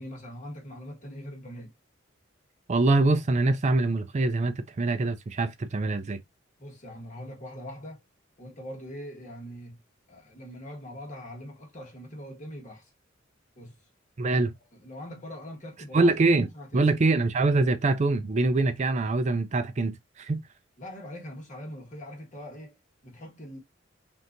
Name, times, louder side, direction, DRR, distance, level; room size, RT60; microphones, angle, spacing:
voice 1, 0.0-1.7 6.6-8.0 8.4-9.8 10.1-12.9 13.6-13.7 14.3-14.4 14.7-16.1 16.5-16.9 20.8-22.8 23.0-23.6, equal, 40° left, 1.5 m, -42 dB
voice 2, 2.7-6.2 14.2-14.5 15.9-16.5 16.7-20.4, right 3 dB, 35° right, 0.4 m, -24 dB
3.7 x 2.7 x 2.5 m
head